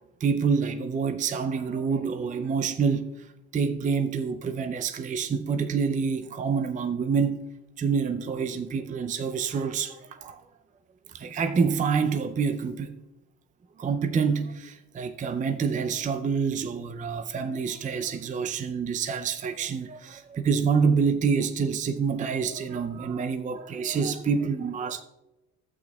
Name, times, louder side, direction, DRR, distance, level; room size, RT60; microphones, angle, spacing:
voice 1, 0.2-3.1 3.5-7.5 7.8-10.4 11.1-13.0 13.8-25.0, right 5 dB, 20° right, 0.5 m, -27 dB
12.0 x 8.4 x 2.3 m
supercardioid pair, 75°, 36 cm